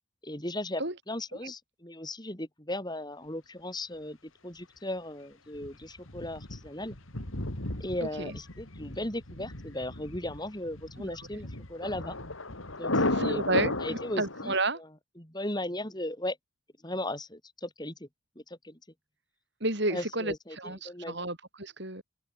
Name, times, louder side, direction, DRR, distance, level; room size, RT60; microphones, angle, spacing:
voice 1, 0.2-4.2 4.4-7.0 7.8-12.2 12.8-13.4 13.8-14.9 15.2-16.4 16.8-18.1 18.3-18.8 19.9-21.2, left 1 dB, 20° left, 5.0 m, -37 dB
Thunder, 5.6-14.6, left 2 dB, 75° left, 3.4 m, -34 dB
voice 2, 8.0-8.3 11.0-11.2 13.1-14.8 19.6-22.0, right 2 dB, 55° right, 6.6 m, -32 dB
open air
head